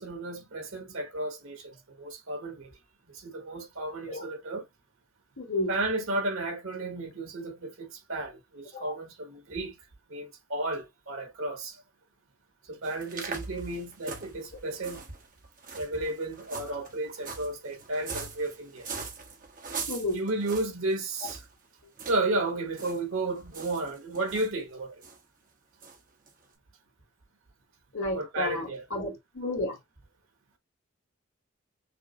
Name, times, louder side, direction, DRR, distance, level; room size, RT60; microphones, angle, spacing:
voice 1, 0.0-2.7 3.1-4.6 5.7-9.8 10.1-11.8 12.7-15.0 15.7-18.9 20.1-21.4 22.1-24.9 28.1-28.8, right 2 dB, 90° right, 1.3 m, -33 dB
voice 2, 5.4-5.7 8.7-8.9 19.9-20.2 27.9-29.8, left 2 dB, 80° left, 1.6 m, -32 dB
sound 1, 12.8-21.5 22.0-22.2 22.5-23.0 23.3-24.5 25.0-25.2 25.8-26.0 26.3-26.4, right 4 dB, 40° right, 1.0 m, -41 dB
5.7 x 2.1 x 2.5 m
head